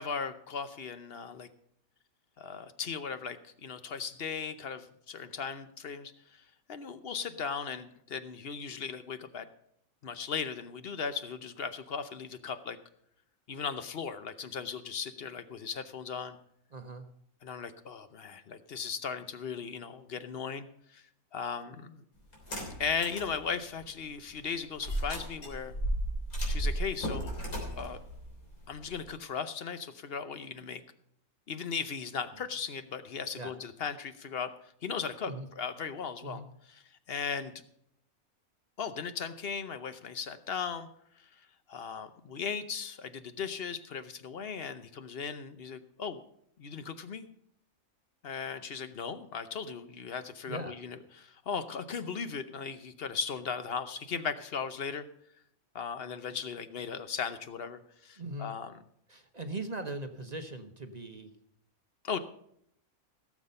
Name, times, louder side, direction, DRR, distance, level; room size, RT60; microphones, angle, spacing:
voice 1, 0.0-1.5 2.4-6.4 6.7-9.5 10.0-12.8 13.5-16.4 17.4-20.7 20.9-21.0 21.3-22.0 22.8-25.7 26.5-27.4 27.8-28.0 28.7-30.8 31.5-34.5 34.8-36.8 37.1-37.5 38.8-40.9 41.7-46.2 46.6-47.3 48.2-55.0 55.7-58.7 62.0-62.2, left 6 dB, 50° left, 11 dB, 0.9 m, -37 dB
voice 2, 16.7-17.1 33.4-33.5 35.3-35.5 36.2-36.5 50.5-50.8 58.2-58.5 59.1-61.4, right 2 dB, 35° right, 7 dB, 0.8 m, -40 dB
sound 1, 22.3-23.3 23.8-23.9 24.8-29.1, right 1 dB, 85° left, 3.8 m, -34 dB
16.5 x 7.3 x 5.4 m, 0.72 s
omnidirectional pair, 1.5 m